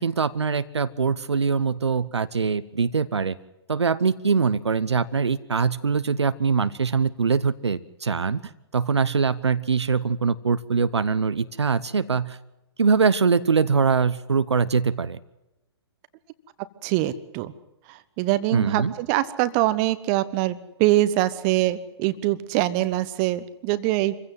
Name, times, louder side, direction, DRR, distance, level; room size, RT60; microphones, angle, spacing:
voice 1, 0.0-3.4 3.7-8.4 8.7-12.4 12.8-15.2 18.5-18.9, right 5 dB, 80° right, 14 dB, 0.9 m, -23 dB
voice 2, 16.8-17.5 17.9-24.2, right 15 dB, 30° right, 14 dB, 1.2 m, -23 dB
25.5 x 16.0 x 7.7 m, 0.95 s
figure-of-eight pair, 120°, 14 cm